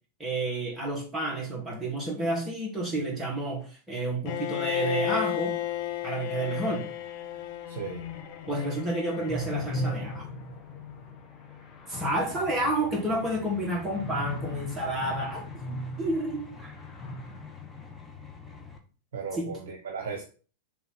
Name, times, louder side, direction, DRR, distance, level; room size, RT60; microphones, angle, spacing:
voice 1, 0.2-5.6 6.0-6.9 8.5-10.3 11.9-16.7 19.4-19.6, right 1 dB, 10° right, 2.7 m, -30 dB
Bowed string instrument, 4.3-10.2, left 14 dB, 45° left, 1.0 m, -34 dB
voice 2, 7.7-8.1 19.1-20.2, right 5 dB, 55° right, 1.2 m, -36 dB
sound 1, 9.3-18.0, equal, 20° left, 1.6 m, -38 dB
sound 2, 11.9-18.8, left 5 dB, 5° left, 1.3 m, -46 dB
6.8 x 3.4 x 5.9 m
figure-of-eight pair, 90°, 0 cm